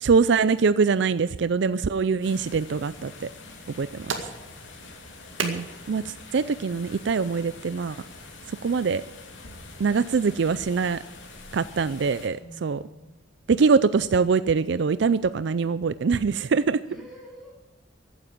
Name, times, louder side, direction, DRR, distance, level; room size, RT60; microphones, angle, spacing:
voice 1, 0.0-3.1 3.8-4.1 5.4-8.0 8.6-9.0 9.8-11.0 11.5-12.8 13.5-16.8, right 5 dB, 60° right, 15 dB, 0.4 m, -23 dB
sound 1, 2.2-12.3, left 3 dB, 75° left, 3.0 m, -45 dB
sound 2, 3.6-8.6, right 4 dB, 85° right, 2.1 m, -39 dB
voice 2, 12.4-13.2 16.9-17.5, equal, 5° right, -4 dB, 6.3 m, -46 dB
15.0 x 9.5 x 7.4 m, 1.1 s
head